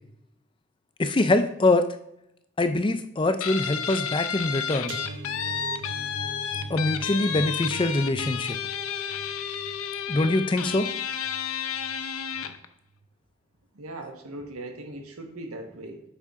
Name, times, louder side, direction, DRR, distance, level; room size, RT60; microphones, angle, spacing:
voice 1, 1.0-1.8 2.6-4.9 6.7-8.6 10.1-10.9, left 2 dB, 20° left, 9 dB, 0.4 m, -24 dB
Guitar, 3.4-12.7, left 8 dB, 75° left, 0.6 m, -31 dB
sound 1, 4.9-12.0 12.3-12.6 12.9-13.1, right 3 dB, 55° right, 0.6 m, -41 dB
voice 2, 13.7-16.0, right 1 dB, 85° right, 4 dB, 1.4 m, -39 dB
8.3 x 5.4 x 3.6 m, 0.78 s
head